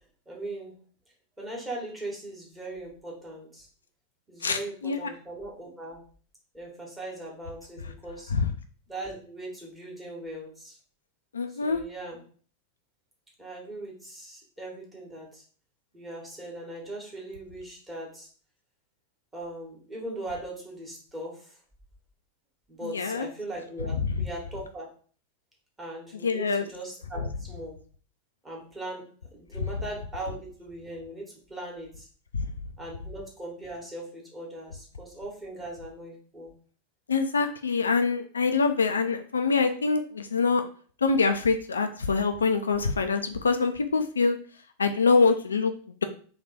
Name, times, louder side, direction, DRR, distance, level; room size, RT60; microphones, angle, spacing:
voice 1, 0.2-0.7 1.4-3.7 4.3-6.0 6.5-8.3 8.9-10.8 11.5-12.2 13.4-15.4 15.9-18.3 19.3-21.6 22.7-24.9 25.8-27.8 28.4-29.0 29.3-32.1 32.8-36.5, right 1 dB, 15° right, -3 dB, 1.7 m, -39 dB
voice 2, 4.4-5.1 8.3-8.5 11.3-11.8 22.8-23.3 24.2-24.3 26.2-26.7 32.3-32.5 37.1-40.6 41.0-44.4 44.8-46.0, left 4 dB, 70° left, 7 dB, 0.4 m, -25 dB
3.4 x 3.2 x 4.1 m, 0.43 s
figure-of-eight pair, 90°, 0 cm